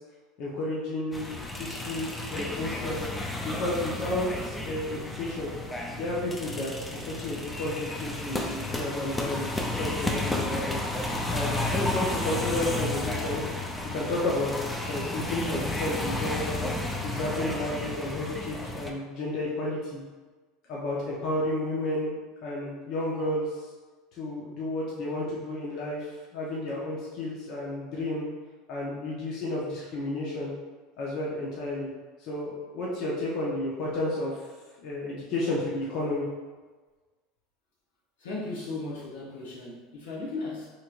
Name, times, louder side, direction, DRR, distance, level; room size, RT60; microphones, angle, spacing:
voice 1, 0.4-3.1 3.4-5.5 5.9-10.8 11.1-13.4 13.8-14.5 14.8-16.6 17.0-20.0 20.7-22.1 22.4-23.5 24.2-28.3 28.7-30.5 31.0-31.9 32.2-34.4 34.8-36.3, left 1 dB, 60° left, -5 dB, 0.9 m, -32 dB
sound 1, 1.1-18.9, left 2 dB, 15° left, 0.5 m, -32 dB
voice 2, 38.2-40.7, left 3 dB, 80° left, -5 dB, 1.1 m, -36 dB
4.3 x 3.1 x 2.5 m, 1.3 s
hypercardioid pair, 85°, 0 cm